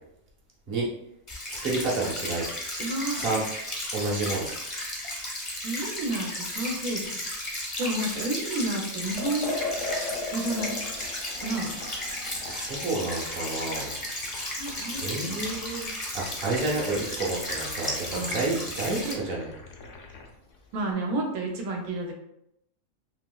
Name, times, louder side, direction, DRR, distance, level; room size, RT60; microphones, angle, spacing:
sound 1, 1.3-19.1, left 1 dB, 30° left, 0.6 m, -34 dB
voice 1, 1.6-2.5 3.2-3.4 3.9-4.5 8.1-8.3 12.5-14.0 15.0-19.5, right 3 dB, 45° right, -3 dB, 0.9 m, -30 dB
voice 2, 2.8-3.3 5.6-7.2 7.8-9.5 10.3-10.8 11.3-11.8 14.5-15.4 18.1-18.4 20.7-22.1, right 2 dB, 80° right, 1 dB, 1.2 m, -31 dB
Liquid, 9.1-20.3, left 3 dB, 65° left, 0.8 m, -39 dB
3.5 x 2.9 x 2.3 m, 0.80 s
omnidirectional pair, 1.6 m